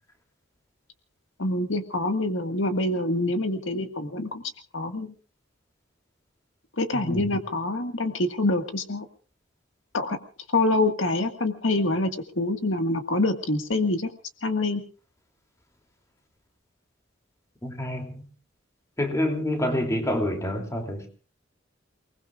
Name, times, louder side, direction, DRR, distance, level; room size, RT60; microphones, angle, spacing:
voice 1, 1.4-4.4 4.7-5.1 6.8-9.1 9.9-10.2 10.5-14.1 14.4-14.8, left 2 dB, 80° left, 1.8 m, -26 dB
voice 2, 6.9-7.2 17.6-18.2 19.0-21.1, left 1 dB, 15° left, 2.9 m, -27 dB
29.0 x 20.0 x 2.4 m
head